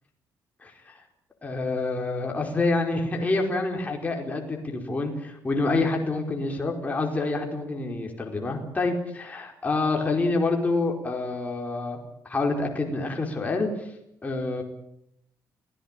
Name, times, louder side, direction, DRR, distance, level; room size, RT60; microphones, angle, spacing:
voice 1, 0.6-1.0 1.4-12.0 12.2-13.9 14.2-14.6, left 3 dB, 20° left, 2 dB, 4.8 m, -27 dB
27.5 x 16.5 x 9.1 m, 0.76 s
cardioid pair, 115°, 7 cm